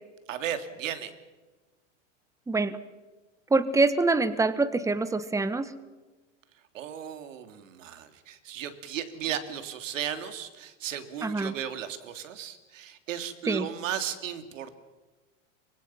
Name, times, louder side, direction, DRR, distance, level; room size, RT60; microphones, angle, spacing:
voice 1, 0.3-1.1 6.7-14.7, right 9 dB, 80° right, 9 dB, 3.1 m, -35 dB
voice 2, 2.5-2.8 3.5-5.7 11.2-11.5 13.5-13.6, right 3 dB, 10° right, 13 dB, 1.5 m, -25 dB
28.0 x 25.0 x 5.9 m, 1.2 s
hypercardioid pair, 115°, 38 cm